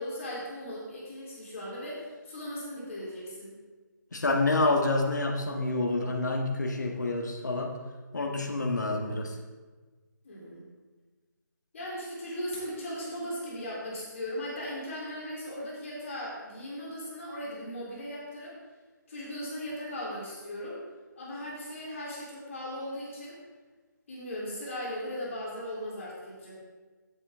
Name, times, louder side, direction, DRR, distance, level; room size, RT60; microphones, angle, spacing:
voice 1, 0.0-3.5 10.2-10.6 11.7-18.5 19.1-20.8 21.2-23.3 24.1-26.6, equal, 40° left, -6 dB, 3.6 m, -38 dB
voice 2, 4.1-7.8 8.1-9.4, left 2 dB, 60° left, 2 dB, 1.7 m, -28 dB
13.0 x 8.4 x 3.7 m, 1.3 s
figure-of-eight pair, 145°, 11 cm